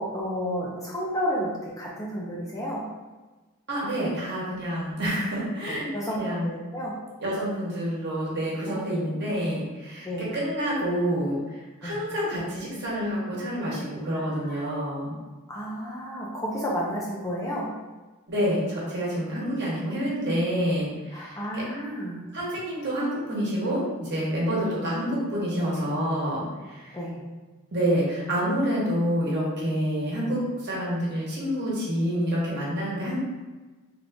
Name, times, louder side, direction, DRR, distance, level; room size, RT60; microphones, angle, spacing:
voice 1, 0.0-2.8 5.7-7.0 8.7-8.8 9.1-9.3 10.0-10.3 11.8-12.0 14.1-14.6 15.5-17.7 19.8-20.0 21.1-22.2 26.9-27.2, equal, 15° left, -5 dB, 0.5 m, -32 dB
voice 2, 3.7-6.5 7.2-15.1 18.3-21.6 22.3-27.0 27.7-33.2, equal, 50° right, -6 dB, 1.2 m, -28 dB
3.7 x 2.5 x 3.4 m, 1.2 s
head